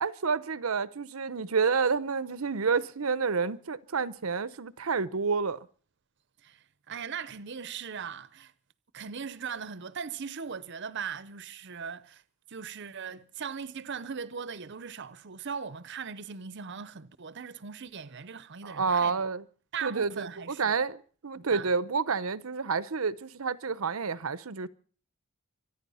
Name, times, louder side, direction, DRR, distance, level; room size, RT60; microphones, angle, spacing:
voice 1, 0.0-5.7 18.6-19.4 19.8-24.7, right 5 dB, 90° right, 0.8 m, -29 dB
voice 2, 6.4-8.5 8.9-12.2 12.5-19.2 19.7-20.8 21.4-21.7, right 6 dB, 55° right, 0.7 m, -39 dB
25.0 x 10.0 x 5.6 m
head